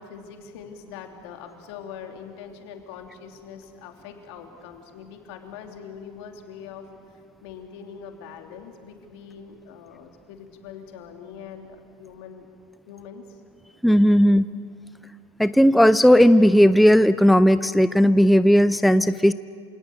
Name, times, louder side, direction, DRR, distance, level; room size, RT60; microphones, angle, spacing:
voice 1, 0.0-6.8 7.4-11.7 12.0-12.5 12.9-13.3, left 7 dB, 70° left, 4 dB, 3.2 m, -42 dB
voice 2, 13.8-14.5 15.4-19.3, equal, ahead, 14 dB, 0.5 m, -16 dB
28.0 x 17.5 x 8.8 m, 2.2 s
hypercardioid pair, 90°, 14 cm